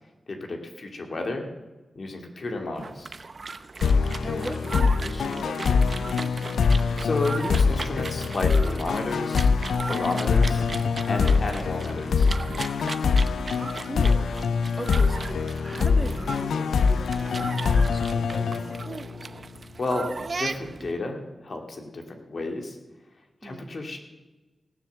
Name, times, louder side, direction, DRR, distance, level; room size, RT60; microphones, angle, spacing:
voice 1, 0.3-1.5 1.9-3.1 7.0-9.5 9.9-10.6 11.1-12.3 19.8-20.1 20.4-22.8 23.4-24.0, left 2 dB, 65° left, 3 dB, 2.7 m, -32 dB
sound 1, 2.7-20.9, right 3 dB, 55° right, 0.8 m, -37 dB
sound 2, 3.8-19.3, left 5 dB, 90° left, 0.5 m, -24 dB
voice 2, 4.2-6.5 9.9-10.4 13.0-14.3 14.8-19.1 23.4-23.8, right 1 dB, 20° right, 7 dB, 1.6 m, -39 dB
17.5 x 7.2 x 7.5 m, 1.1 s
cardioid pair, 45°, 0 cm